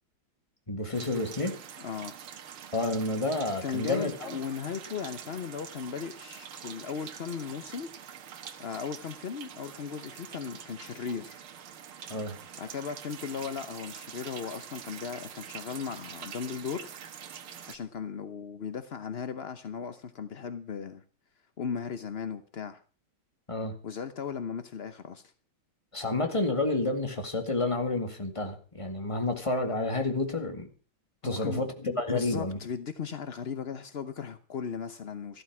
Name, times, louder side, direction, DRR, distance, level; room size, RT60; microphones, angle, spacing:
voice 1, 0.7-1.6 2.7-4.3 12.1-12.4 23.5-23.8 25.9-30.7 31.2-32.6, left 2 dB, 15° left, 2.0 m, -30 dB
sound 1, 0.9-17.8, right 8 dB, 80° right, 2.1 m, -45 dB
voice 2, 1.8-2.2 3.6-7.9 8.6-11.4 12.6-16.9 17.7-21.0 21.6-22.8 23.8-25.3 31.2-35.4, left 6 dB, 55° left, 0.6 m, -37 dB
14.0 x 13.0 x 6.0 m
omnidirectional pair, 2.3 m